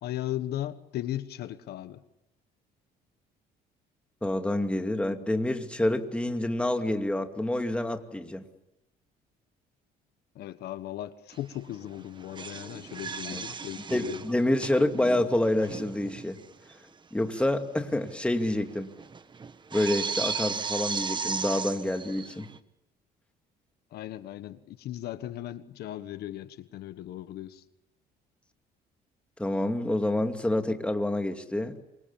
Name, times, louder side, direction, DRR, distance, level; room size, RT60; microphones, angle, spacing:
voice 1, 0.0-2.0 10.3-14.2 23.9-27.6, left 13 dB, 70° left, 12 dB, 1.3 m, -37 dB
voice 2, 4.2-8.4 13.3-13.4 13.9-16.4 17.1-18.9 19.7-22.5 29.4-31.8, left 1 dB, 5° left, 5 dB, 2.5 m, -27 dB
sound 1, 11.3-11.6 11.8-16.4 16.7-16.8 17.4-17.5 17.8-22.6, right 5 dB, 25° right, 1.3 m, -36 dB
28.0 x 24.0 x 7.2 m, 0.84 s
cardioid pair, 110°, 17 cm